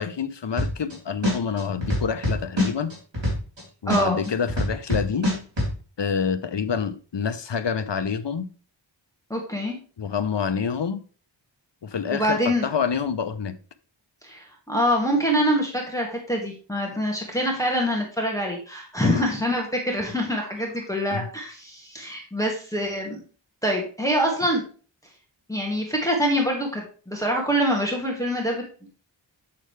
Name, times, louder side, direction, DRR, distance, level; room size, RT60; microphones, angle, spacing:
voice 1, 0.0-2.9 3.8-5.3 6.0-8.5 10.0-11.0 11.8-13.5 19.0-19.3 21.1-21.3, left 6 dB, 65° left, 11 dB, 0.8 m, -27 dB
sound 1, 0.6-0.9 1.2-3.6 3.9-5.7, left 1 dB, 65° right, 3.9 m, -23 dB
voice 2, 3.9-4.3 9.3-9.8 12.1-12.7 14.2-23.2 23.6-24.6 25.5-28.6, equal, 5° left, -1 dB, 1.9 m, -25 dB
8.4 x 6.5 x 3.3 m, 0.38 s
wide cardioid pair, 50°, 47 cm